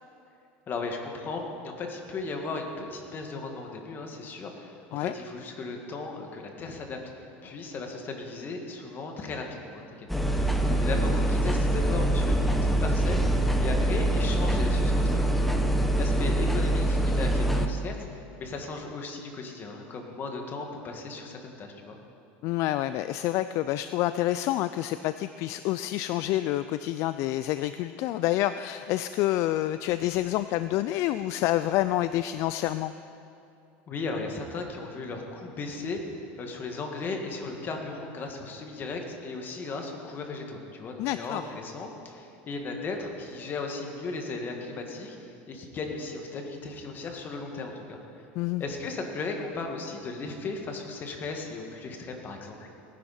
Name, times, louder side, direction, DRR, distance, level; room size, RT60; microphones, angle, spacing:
voice 1, 0.7-10.1 10.3-15.2 16.0-22.0 33.9-36.0 36.4-48.0 48.6-52.7, left 3 dB, 35° left, 3 dB, 1.9 m, -36 dB
sound 1, 10.1-17.7, right 1 dB, ahead, 0.9 m, -24 dB
voice 2, 22.4-32.9 41.0-41.5 48.4-48.6, left 14 dB, 60° left, 12 dB, 0.3 m, -28 dB
18.5 x 10.5 x 4.3 m, 2.7 s
supercardioid pair, 120°, 6 cm